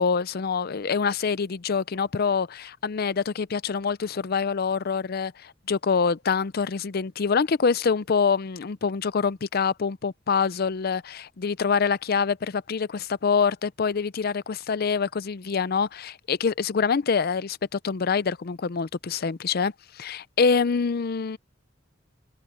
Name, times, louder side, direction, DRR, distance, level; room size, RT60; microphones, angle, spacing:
voice 1, 0.0-21.4, left 5 dB, 55° left, 0.5 m, -25 dB
head